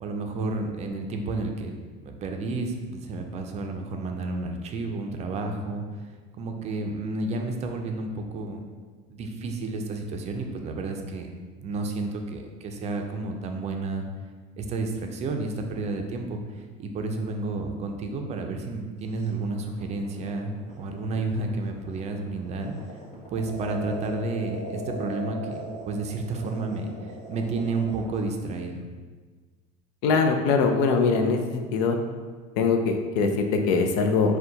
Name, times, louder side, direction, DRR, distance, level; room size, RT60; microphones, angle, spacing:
voice 1, 0.0-1.7 2.0-5.8 6.4-8.6 9.1-11.3 11.6-14.0 14.6-16.4 16.8-22.7 23.3-25.6 25.8-26.9 27.3-28.8, right 3 dB, 35° right, 4 dB, 0.4 m, -31 dB
sound 1, 19.2-28.2, equal, 35° left, 1.2 m, -38 dB
voice 2, 30.0-32.0 32.6-34.4, left 4 dB, 85° left, 5 dB, 0.5 m, -22 dB
4.4 x 2.3 x 3.8 m, 1.4 s
cardioid pair, 140°, 19 cm